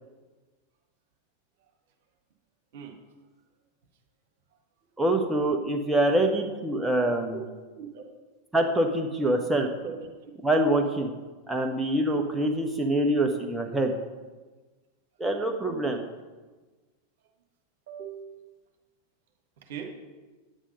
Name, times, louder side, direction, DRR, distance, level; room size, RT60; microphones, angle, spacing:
voice 1, 5.0-7.4 8.5-9.7 10.4-11.1 11.5-13.9 15.2-16.1, right 1 dB, 5° right, 2 dB, 1.1 m, -25 dB
voice 2, 7.0-7.4 7.7-8.0 9.8-10.0 17.9-18.3 19.6-19.8, right 8 dB, 55° right, 4 dB, 1.5 m, -40 dB
9.5 x 8.8 x 5.4 m, 1.3 s
figure-of-eight pair, 90°, 0 cm